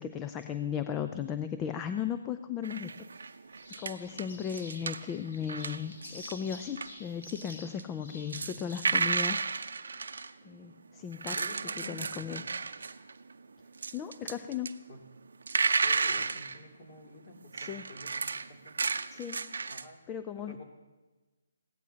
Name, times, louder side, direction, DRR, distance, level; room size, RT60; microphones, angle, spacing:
voice 1, 0.0-2.9 3.8-9.4 10.4-11.4 11.8-12.4 13.9-14.7 17.6-17.9 19.1-19.5 20.1-20.6, left 8 dB, 15° left, 9 dB, 0.4 m, -36 dB
sound 1, 2.6-6.4 6.7-10.3 11.0-13.3 13.7-14.7 15.2-16.6 17.5-19.9, right 4 dB, 70° right, 0.6 m, -33 dB
sound 2, 3.5-8.9, left 2 dB, 55° left, 2.8 m, -49 dB
voice 2, 11.3-12.5 14.9-15.0 15.8-18.8 19.7-20.0 20.4-20.6, left 1 dB, 35° left, 0 dB, 2.7 m, -49 dB
21.5 x 16.5 x 2.8 m, 1.2 s
figure-of-eight pair, 145°, 0 cm